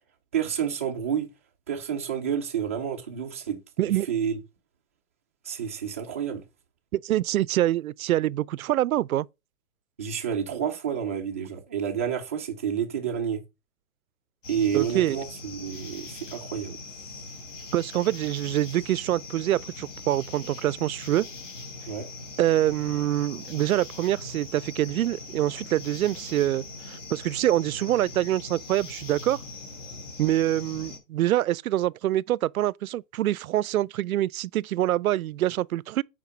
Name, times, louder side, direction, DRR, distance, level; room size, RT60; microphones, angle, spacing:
voice 1, 0.3-1.3 1.7-4.4 5.4-6.4 10.0-13.4 14.5-16.8 21.8-22.1, right 8 dB, 10° right, 0.4 m, -29 dB
voice 2, 6.9-9.3 14.7-15.2 17.7-21.3 22.4-29.4 30.2-36.0, right 13 dB, 85° right, 0.5 m, -25 dB
sound 1, 14.4-31.0, left 3 dB, 60° left, 3.9 m, -41 dB
8.4 x 4.9 x 4.9 m
hypercardioid pair, 155°, 41 cm